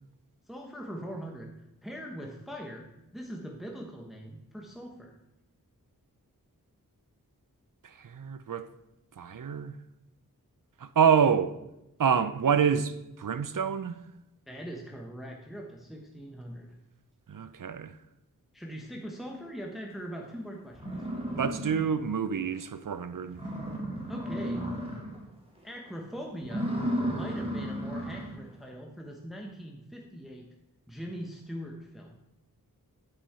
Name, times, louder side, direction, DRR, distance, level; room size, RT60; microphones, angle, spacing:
voice 1, 0.5-1.5 1.8-2.9 3.1-5.1 14.5-16.8 18.5-21.0 24.1-24.6 25.6-26.7 27.1-30.5 30.9-32.2, equal, ahead, 1.0 m, -41 dB
voice 2, 7.8-8.7 9.2-9.7 10.8-11.5 12.0-14.0 17.3-17.9 21.4-23.4, right 7 dB, 65° right, 0.6 m, -27 dB
sound 1, 20.3-20.4 20.7-22.1 22.5-22.6 23.0-23.1 23.3-25.2 25.6-25.9 26.4-28.4, equal, 15° right, 2.0 m, -34 dB
10.0 x 5.5 x 4.3 m
wide cardioid pair, 60°, 36 cm